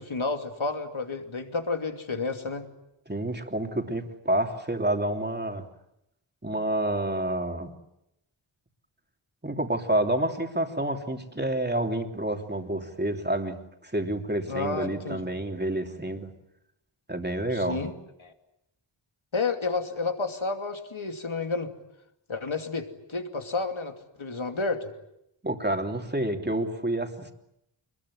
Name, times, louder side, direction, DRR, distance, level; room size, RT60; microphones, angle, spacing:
voice 1, 0.0-2.7 14.5-15.3 17.5-17.9 18.2-18.3 19.3-21.7 22.3-24.9, left 3 dB, 70° left, 6 dB, 2.8 m, -31 dB
voice 2, 3.1-5.6 6.4-7.7 9.4-13.6 13.8-16.3 17.1-17.8 25.4-27.3, right 1 dB, 20° right, 4 dB, 3.1 m, -28 dB
26.0 x 21.5 x 9.9 m, 0.84 s
wide cardioid pair, 70°, 49 cm